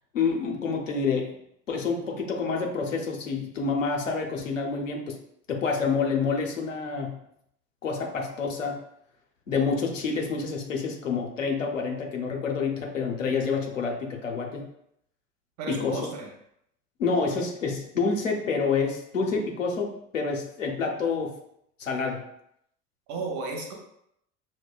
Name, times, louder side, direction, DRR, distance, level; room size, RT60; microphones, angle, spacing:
voice 1, 0.1-1.3 1.7-5.2 5.5-7.2 7.8-8.8 9.5-14.7 15.7-16.1 17.0-21.4 21.8-22.3, left 5 dB, 80° left, 0 dB, 0.8 m, -28 dB
voice 2, 15.6-16.3 23.1-23.7, right 3 dB, 50° right, 1 dB, 1.0 m, -33 dB
6.2 x 2.1 x 2.2 m, 0.74 s
figure-of-eight pair, 70°, 38 cm